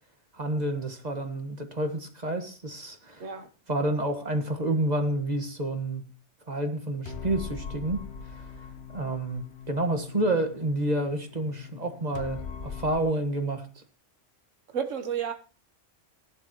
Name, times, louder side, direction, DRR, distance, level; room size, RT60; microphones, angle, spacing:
voice 1, 0.3-3.3 3.7-6.0 6.5-8.0 8.3-8.4 8.9-13.8, right 1 dB, 35° right, 1.8 m, -29 dB
sound 1, 7.1-13.0, left 5 dB, 60° left, 1.2 m, -41 dB
voice 2, 14.7-15.3, right 8 dB, 90° right, 1.5 m, -31 dB
17.0 x 12.0 x 3.1 m
omnidirectional pair, 1.3 m